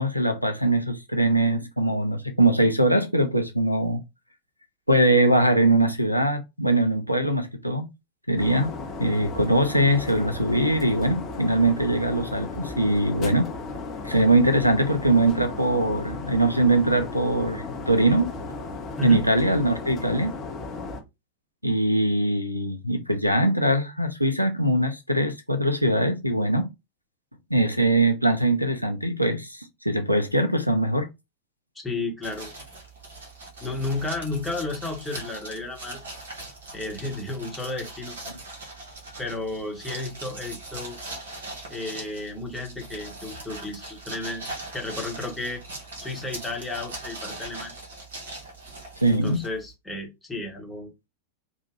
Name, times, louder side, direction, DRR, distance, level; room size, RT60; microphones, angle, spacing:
voice 1, 0.0-4.0 4.9-7.9 8.3-8.7 9.0-13.5 14.0-18.3 19.0-20.3 21.6-26.7 27.5-31.1 49.0-49.4, right 1 dB, 90° left, 0.5 m, -22 dB
sound 1, 8.4-21.0, left 3 dB, 30° left, 0.9 m, -35 dB
voice 2, 31.8-32.5 33.6-36.0 36.7-38.1 39.2-41.0 41.7-45.6 46.0-47.8 49.1-50.9, left 2 dB, 5° left, 1.2 m, -32 dB
sound 2, 32.2-49.7, right 2 dB, 60° right, 1.5 m, -40 dB
3.6 x 2.5 x 3.2 m
figure-of-eight pair, 90°, 0 cm